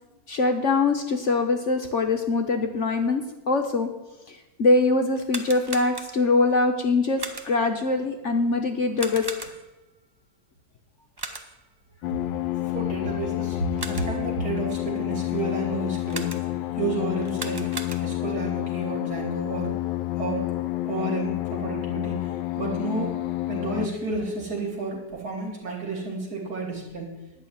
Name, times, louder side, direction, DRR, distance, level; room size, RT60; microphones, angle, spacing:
voice 1, 0.3-3.9 4.3-9.5, left 3 dB, 50° left, 4 dB, 1.0 m, -23 dB
sound 1, 5.2-6.4 7.2-7.7 9.0-9.8 11.2-11.7 13.5-14.3 16.1-16.7 17.2-18.4, right 2 dB, 25° right, 0.5 m, -37 dB
sound 2, 12.0-23.9, left 16 dB, 85° left, 1.2 m, -29 dB
voice 2, 12.7-16.3 16.8-17.7 18.0-19.7 20.2-20.5 20.8-23.2 23.5-27.1, right 3 dB, 60° right, -1 dB, 3.3 m, -31 dB
11.0 x 6.4 x 8.9 m, 1.0 s
omnidirectional pair, 1.9 m